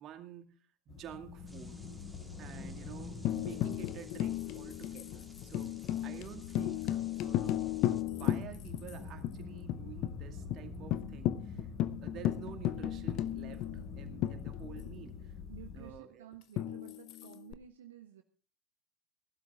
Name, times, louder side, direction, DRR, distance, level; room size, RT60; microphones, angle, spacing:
voice 1, 0.0-1.8 2.4-5.8 6.0-7.7 8.2-11.7 12.0-15.3 15.7-16.3, right 10 dB, 40° right, 6 dB, 2.1 m, -50 dB
sound 1, 0.9-15.9, left 5 dB, 30° left, 4.3 m, -46 dB
sound 2, 1.5-8.0, right 1 dB, ahead, 2.3 m, -60 dB
Tambourine, 3.2-8.9 9.2-9.3 9.7-10.2 10.5-10.6 10.9-15.0 16.6-17.5, left 13 dB, 50° left, 0.8 m, -35 dB
voice 2, 15.5-18.2, right 10 dB, 75° right, 6 dB, 1.1 m, -53 dB
18.5 x 12.0 x 3.6 m, 0.38 s
figure-of-eight pair, 80°, 0 cm